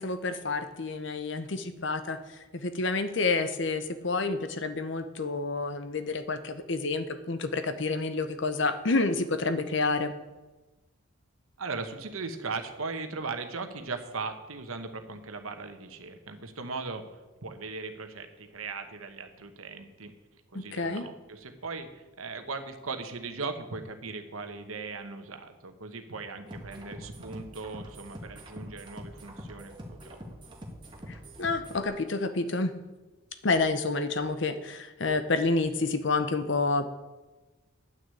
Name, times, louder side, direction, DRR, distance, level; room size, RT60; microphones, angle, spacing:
voice 1, 0.0-2.2 2.5-10.1 20.5-21.1 31.1-32.7 33.4-36.9, left 3 dB, 60° left, 10 dB, 0.9 m, -29 dB
voice 2, 11.6-20.1 20.5-30.2, right 4 dB, 90° right, 7 dB, 1.1 m, -38 dB
sound 1, 26.5-31.9, equal, 20° right, 1.7 m, -45 dB
9.2 x 6.4 x 8.4 m, 1.2 s
head